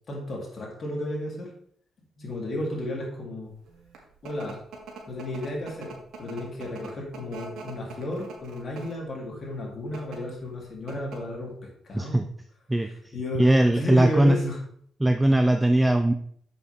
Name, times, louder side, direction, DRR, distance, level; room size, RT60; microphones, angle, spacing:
voice 1, 0.1-1.5 2.2-3.5 4.2-4.6 5.1-12.2 13.1-13.5 13.7-14.6, left 1 dB, 40° left, -2 dB, 3.1 m, -33 dB
sound 1, 3.6-9.1 9.8-10.2 10.6-10.7 10.9-11.4, right 4 dB, 70° right, 2.1 m, -42 dB
voice 2, 11.9-12.3 12.7-14.4 15.0-16.1, right 1 dB, 10° right, 7 dB, 0.5 m, -20 dB
7.6 x 6.4 x 3.5 m, 0.62 s
cardioid pair, 90°, 0 cm